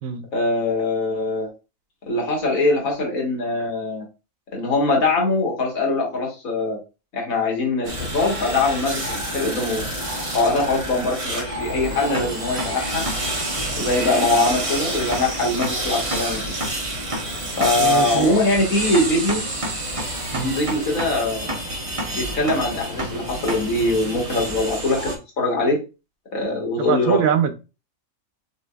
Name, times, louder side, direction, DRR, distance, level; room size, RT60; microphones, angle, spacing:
voice 1, 0.3-1.5 2.0-4.1 4.5-6.8 7.1-9.8 10.3-13.0 13.8-16.4 17.6-19.4 20.4-21.5 22.1-25.8 26.3-27.2, left 2 dB, 75° left, 1.9 m, -22 dB
Construction Soundscape, 7.8-25.2, right 1 dB, 25° right, 1.0 m, -28 dB
voice 2, 17.8-18.3 20.3-20.5 26.8-27.5, right 8 dB, 85° right, 1.1 m, -23 dB
6.4 x 2.8 x 2.3 m
omnidirectional pair, 1.4 m